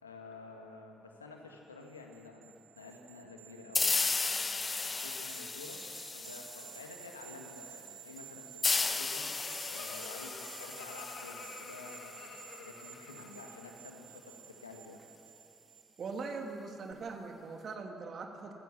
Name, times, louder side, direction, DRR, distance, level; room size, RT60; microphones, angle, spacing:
voice 1, 0.0-15.0, left 3 dB, 90° left, 2 dB, 1.8 m, -51 dB
sound 1, 1.8-16.4 16.8-16.9, right 10 dB, 65° right, 1.4 m, -52 dB
sound 2, 3.8-7.1 8.6-12.1, left 4 dB, 30° left, 1.1 m, -34 dB
Laughter, 8.8-13.9, left 7 dB, 55° left, 1.1 m, -50 dB
voice 2, 16.0-18.5, right 4 dB, 50° right, 3 dB, 2.7 m, -41 dB
26.5 x 15.5 x 7.3 m, 2.9 s
figure-of-eight pair, 45°, 0 cm